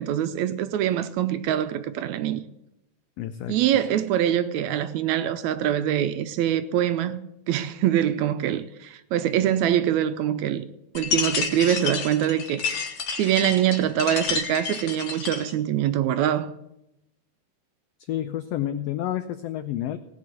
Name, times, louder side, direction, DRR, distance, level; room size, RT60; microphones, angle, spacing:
voice 1, 0.0-2.4 3.5-10.7 10.9-12.8 13.2-16.5, right 11 dB, 80° right, 1.8 m, -24 dB
voice 2, 3.2-3.6 18.1-20.0, left 12 dB, 85° left, 1.4 m, -29 dB
sound 1, 10.9-15.5, left 5 dB, 65° left, 2.5 m, -29 dB
17.0 x 5.9 x 7.7 m
omnidirectional pair, 3.5 m